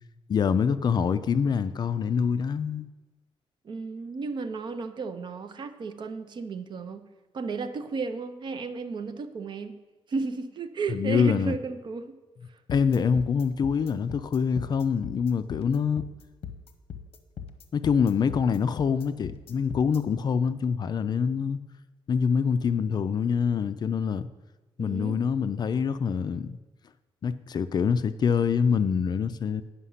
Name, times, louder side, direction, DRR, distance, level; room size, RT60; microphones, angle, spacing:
voice 1, 0.3-2.9 10.9-11.6 12.7-16.0 17.7-21.6 22.1-24.3 24.8-26.6 27.2-29.6, left 6 dB, 40° left, 0.4 m, -25 dB
voice 2, 3.6-7.0 7.3-9.7 10.1-12.2 24.8-25.2, right 4 dB, 45° right, 0.6 m, -33 dB
sound 1, 12.7-20.0, left 7 dB, 60° left, 0.8 m, -40 dB
9.7 x 5.8 x 5.6 m
wide cardioid pair, 140°, 10 cm